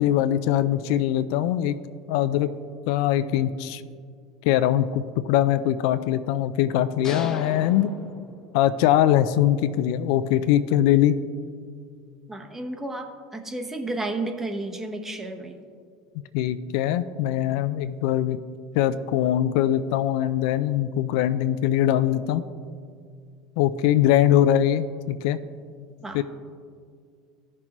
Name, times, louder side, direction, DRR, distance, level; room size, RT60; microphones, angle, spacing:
voice 1, 0.0-1.7 2.1-2.5 2.9-3.8 4.4-7.9 8.5-11.2 16.3-18.4 18.7-22.5 23.6-25.4 26.1-26.2, left 11 dB, 70° left, 12 dB, 0.3 m, -22 dB
sound 1, 7.0-8.9, left 3 dB, 25° left, 0.8 m, -37 dB
voice 2, 12.3-15.6 26.0-26.2, right 2 dB, 15° right, 5 dB, 0.9 m, -32 dB
14.0 x 6.1 x 3.0 m, 2.2 s
hypercardioid pair, 95°, 2 cm